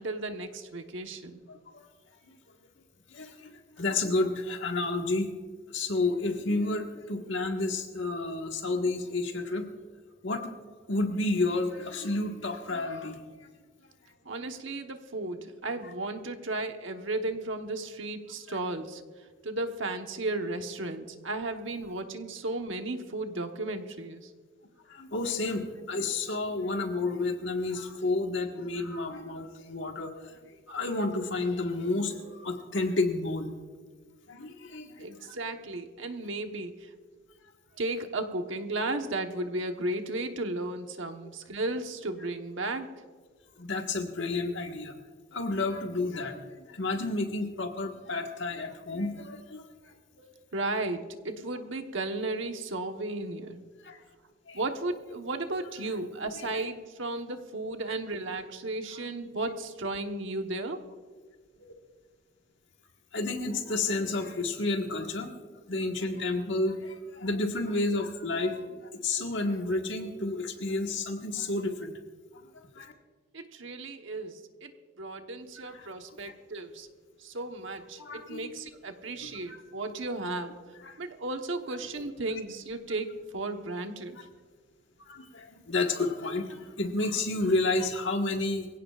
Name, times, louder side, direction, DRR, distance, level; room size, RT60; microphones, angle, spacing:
voice 1, 0.0-1.4 14.2-19.0 19.4-24.3 35.0-36.9 37.8-42.9 50.5-53.6 54.5-60.8 73.3-74.7 75.0-76.9 77.2-80.5 81.0-84.2, right 2 dB, 65° right, 5 dB, 1.2 m, -34 dB
voice 2, 3.1-5.3 5.7-9.7 10.2-10.5 10.9-13.5 18.5-18.6 24.9-33.5 34.3-35.3 43.6-45.0 45.3-50.3 53.8-54.0 54.5-54.6 56.3-56.6 61.6-61.7 63.1-65.3 65.7-71.9 72.3-72.9 75.7-75.9 76.2-76.3 78.0-78.5 79.2-79.6 80.8-80.9 85.1-88.7, left 2 dB, 60° left, 3 dB, 1.6 m, -31 dB
24.0 x 16.5 x 2.5 m, 1.5 s
head